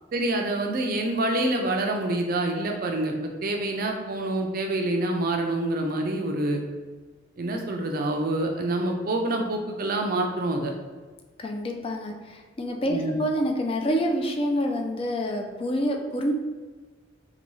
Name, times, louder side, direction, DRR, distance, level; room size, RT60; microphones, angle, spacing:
voice 1, 0.1-6.6 7.4-10.7 12.9-13.1, right 2 dB, 50° right, 3 dB, 0.4 m, -27 dB
voice 2, 11.4-16.3, equal, 30° left, 3 dB, 0.4 m, -27 dB
4.0 x 2.2 x 3.0 m, 1.4 s
head